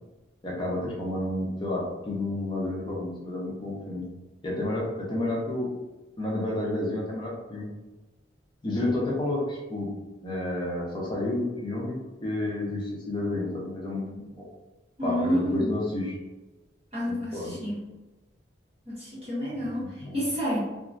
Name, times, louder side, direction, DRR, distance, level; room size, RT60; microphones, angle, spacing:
voice 1, 0.4-4.1 4.4-5.7 6.2-7.7 8.6-9.9 10.2-14.5 15.0-16.2 17.1-17.6 19.6-20.2, left 1 dB, 25° left, -3 dB, 0.6 m, -30 dB
voice 2, 15.0-15.8 16.9-17.8 18.9-20.6, equal, 30° right, -9 dB, 1.2 m, -29 dB
2.9 x 2.3 x 2.5 m, 1.1 s
head